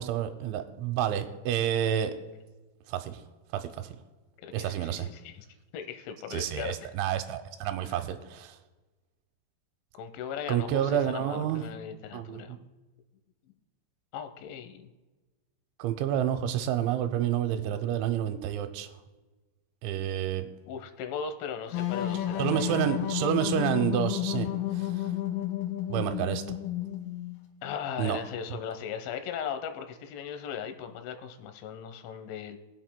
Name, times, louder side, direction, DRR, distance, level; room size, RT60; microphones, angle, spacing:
voice 1, 0.0-2.1 2.9-3.2 3.5-3.9 4.5-5.1 6.3-8.6 10.5-11.6 12.1-12.5 15.8-18.9 19.8-20.5 22.4-24.5 24.8-24.9 25.9-26.4 28.0-28.2, right 10 dB, 85° right, 8 dB, 3.0 m, -29 dB
voice 2, 4.4-5.5 5.7-6.7 7.8-8.0 9.9-12.6 13.5-13.6 14.1-14.9 20.7-23.1 27.6-32.6, left 7 dB, 90° left, 8 dB, 3.3 m, -38 dB
sound 1, 21.7-27.4, left 12 dB, 70° left, 2.7 m, -31 dB
23.0 x 8.0 x 2.2 m, 1.2 s
omnidirectional pair, 5.4 m